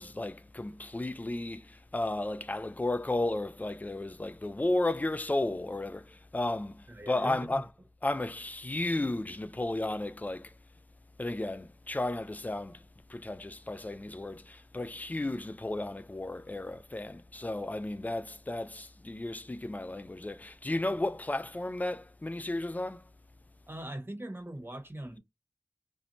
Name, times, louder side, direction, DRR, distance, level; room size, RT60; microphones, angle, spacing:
voice 1, 0.0-6.8 7.1-7.6 8.0-10.5 11.2-12.8 13.1-23.0, left 2 dB, 25° left, 0.3 m, -33 dB
voice 2, 6.9-7.6 23.7-25.2, right 1 dB, 40° right, 0.9 m, -41 dB
2.6 x 2.1 x 2.9 m
wide cardioid pair, 45°, 6 cm